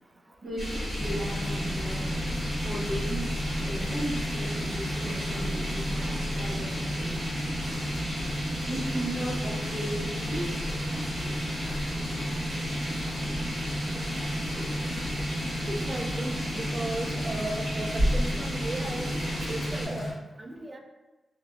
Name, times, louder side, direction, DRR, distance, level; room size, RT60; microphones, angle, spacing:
voice 1, 0.4-3.3 3.6-7.8 8.6-10.6, equal, 50° right, -11 dB, 0.7 m, -37 dB
sound 1, 0.6-19.9, equal, 75° right, 1.5 m, -33 dB
sound 2, 1.0-20.1, equal, 35° left, 0.9 m, -34 dB
voice 2, 15.7-19.1 19.5-20.8, right 2 dB, 25° right, 3 dB, 0.3 m, -36 dB
3.2 x 2.1 x 2.4 m, 1.1 s
wide cardioid pair, 135°, 0 cm